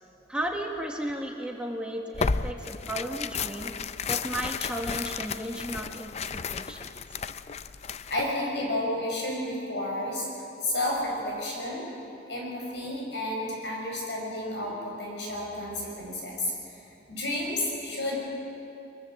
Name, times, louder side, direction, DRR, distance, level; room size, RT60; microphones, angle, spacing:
voice 1, 0.3-3.7 4.1-6.9, right 1 dB, 5° right, 1 dB, 1.3 m, -34 dB
Tearing, 2.1-8.3, left 5 dB, 35° left, 0.5 m, -33 dB
voice 2, 8.1-10.3 10.6-11.9 12.3-18.2, left 1 dB, 70° left, -2 dB, 7.5 m, -31 dB
22.5 x 22.5 x 7.8 m, 2.8 s
head